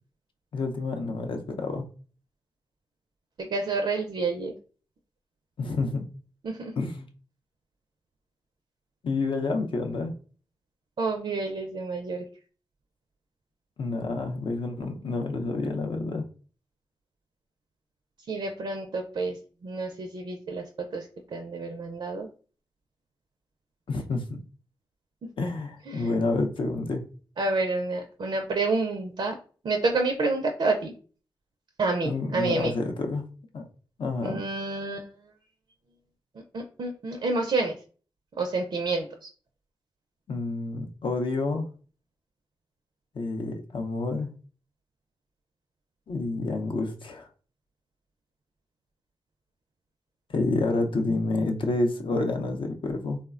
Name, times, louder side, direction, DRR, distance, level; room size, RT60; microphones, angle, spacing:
voice 1, 0.5-1.9 5.6-6.0 6.8-7.1 9.0-10.2 13.8-16.3 23.9-24.4 25.4-27.0 32.0-33.3 33.5-33.6 34.0-34.4 40.3-41.7 43.1-44.3 46.1-47.3 50.3-53.2, left 3 dB, 65° left, 4 dB, 0.5 m, -29 dB
voice 2, 3.4-4.5 6.4-6.7 11.0-12.3 18.3-19.4 19.6-21.1 21.3-22.3 25.9-26.1 27.4-29.4 29.6-30.9 31.8-32.7 34.2-35.1 36.5-37.7 38.4-39.3, right 3 dB, 60° right, 3 dB, 0.4 m, -29 dB
3.1 x 2.1 x 2.3 m, 0.39 s
cardioid pair, 45°, 9 cm